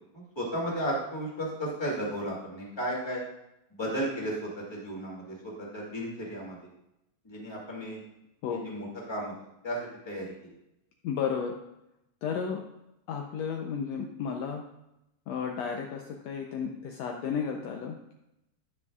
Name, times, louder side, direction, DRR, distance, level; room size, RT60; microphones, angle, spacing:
voice 1, 0.1-3.2 3.7-6.6 7.2-8.0 8.5-9.3 9.6-10.5, equal, 10° left, -4 dB, 1.9 m, -34 dB
voice 2, 11.0-11.6 12.2-12.6 13.1-14.6 15.3-18.1, left 6 dB, 75° left, 2 dB, 1.7 m, -33 dB
9.6 x 9.6 x 2.3 m, 0.87 s
omnidirectional pair, 3.4 m